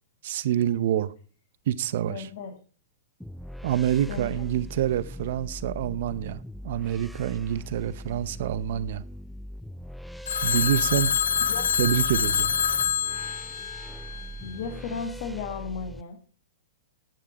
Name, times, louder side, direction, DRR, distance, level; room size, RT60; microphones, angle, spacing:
voice 1, 0.2-1.1 1.7-2.3 3.6-9.0 10.4-11.1 11.4-11.5 11.8-12.5, right 11 dB, 60° right, 0.7 m, -27 dB
voice 2, 2.1-2.6 4.1-4.4 11.5-11.7 14.4-16.2, left 5 dB, 55° left, 1.5 m, -35 dB
sound 1, 3.2-16.0, equal, ahead, 0.4 m, -40 dB
Telephone, 10.3-14.5, left 8 dB, 80° left, 0.5 m, -26 dB
10.5 x 9.0 x 4.1 m
hypercardioid pair, 120°, 0 cm